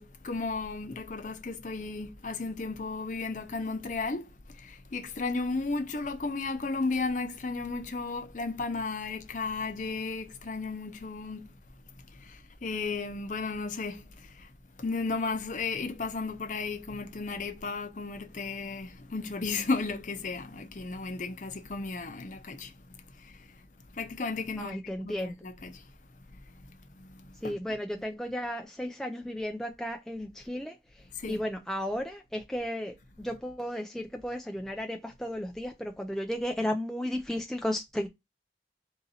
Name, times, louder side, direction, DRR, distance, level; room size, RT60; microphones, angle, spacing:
voice 1, 0.0-11.6 12.1-14.5 14.8-23.6 23.9-25.9 26.4-27.6 31.1-31.4, left 3 dB, 45° left, 0.6 m, -34 dB
voice 2, 24.6-25.5 27.4-38.1, equal, 5° left, 0.3 m, -34 dB
3.9 x 2.8 x 3.9 m
head